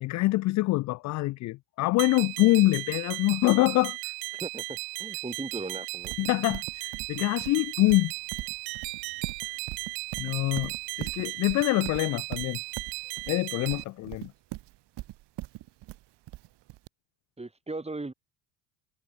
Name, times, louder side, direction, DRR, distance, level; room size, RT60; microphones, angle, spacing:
voice 1, 0.0-4.1 6.2-8.1 10.2-12.6 13.3-14.3, left 19 dB, 40° left, 0.4 m, -25 dB
sound 1, 2.0-13.8, right 26 dB, 75° right, 4.1 m, -36 dB
voice 2, 4.3-6.1 17.4-18.1, right 2 dB, 10° right, 5.1 m, -38 dB
Livestock farm animals working animals, 6.0-16.9, right 17 dB, 55° right, 2.2 m, -40 dB
hypercardioid pair, 85°, 49 cm